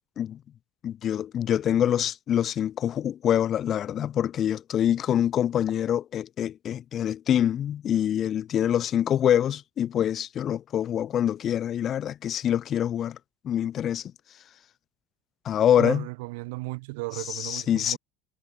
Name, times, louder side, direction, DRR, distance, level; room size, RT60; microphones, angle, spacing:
voice 1, 0.8-13.2 13.4-14.1 15.4-16.0 17.2-18.0, left 10 dB, 40° left, 1.1 m, -25 dB
voice 2, 15.8-18.0, right 25 dB, 85° right, 0.8 m, -34 dB
supercardioid pair, 130°, 0 cm